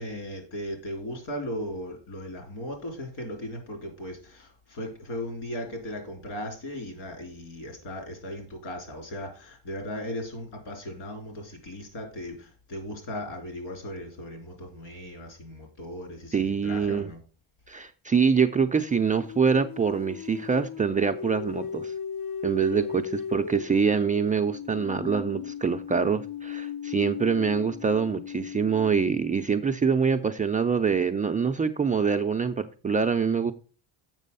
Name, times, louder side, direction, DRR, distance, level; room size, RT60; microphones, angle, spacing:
voice 1, 0.0-17.2 22.7-22.9, left 1 dB, 75° left, 3 dB, 3.7 m, -37 dB
voice 2, 16.3-17.1 17.7-21.9 22.4-33.5, right 6 dB, 20° right, 5 dB, 0.3 m, -25 dB
sound 1, 18.4-29.5, left 8 dB, 55° left, 0.6 m, -37 dB
7.5 x 6.1 x 5.3 m, 0.38 s
cardioid pair, 130°, 42 cm